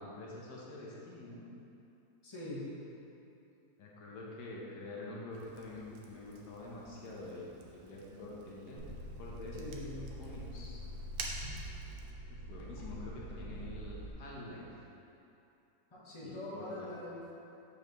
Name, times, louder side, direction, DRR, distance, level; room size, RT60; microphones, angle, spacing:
voice 1, 0.0-1.5 3.8-7.5 7.8-8.8 9.2-9.6 10.2-10.8 12.3-14.7 16.2-17.0, left 2 dB, 80° left, -4 dB, 1.5 m, -46 dB
voice 2, 2.2-2.7 9.5-10.1 15.9-17.2, left 1 dB, 20° left, -8 dB, 1.1 m, -43 dB
Fire, 5.3-12.1, right 4 dB, 80° right, 1.2 m, -50 dB
sound 1, 8.8-14.1, equal, 60° right, 1.7 m, -45 dB
7.0 x 5.4 x 3.1 m, 2.8 s
omnidirectional pair, 1.7 m